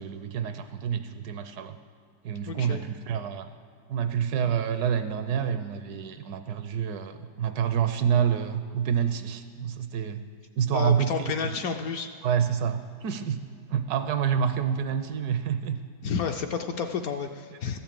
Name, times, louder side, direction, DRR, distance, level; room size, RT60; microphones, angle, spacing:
voice 1, 0.0-1.8 2.2-3.5 3.9-10.2 10.6-11.3 12.2-13.4 13.7-15.8, right 8 dB, 70° right, 9 dB, 1.1 m, -28 dB
voice 2, 2.5-2.8 10.7-12.1 16.0-17.8, left 6 dB, 70° left, 6 dB, 0.9 m, -30 dB
13.0 x 5.9 x 8.9 m, 2.3 s
omnidirectional pair, 1.9 m